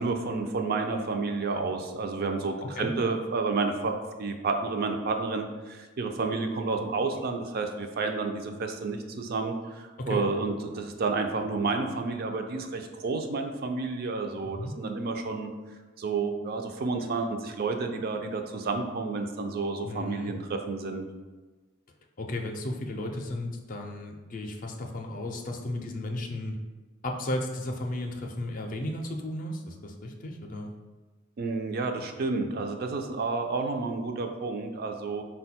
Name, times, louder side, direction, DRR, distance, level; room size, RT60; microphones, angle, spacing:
voice 1, 0.0-15.5 16.0-21.1 31.4-35.2, right 3 dB, 50° right, 4 dB, 0.4 m, -30 dB
voice 2, 19.8-20.3 22.2-26.6 27.0-30.7, left 1 dB, 45° left, 3 dB, 0.5 m, -34 dB
4.3 x 2.2 x 4.2 m, 1.3 s
head